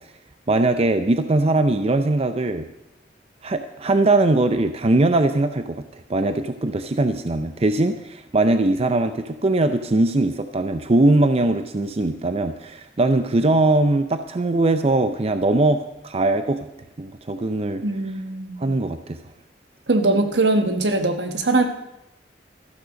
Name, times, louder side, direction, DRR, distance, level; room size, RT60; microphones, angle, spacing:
voice 1, 0.5-2.7 3.4-5.8 6.1-16.6 17.0-17.8 18.6-19.2, right 2 dB, 35° right, 9 dB, 0.5 m, -20 dB
voice 2, 17.8-18.6 19.9-21.6, right 2 dB, 75° right, 6 dB, 1.4 m, -21 dB
13.0 x 12.5 x 5.2 m, 0.88 s
head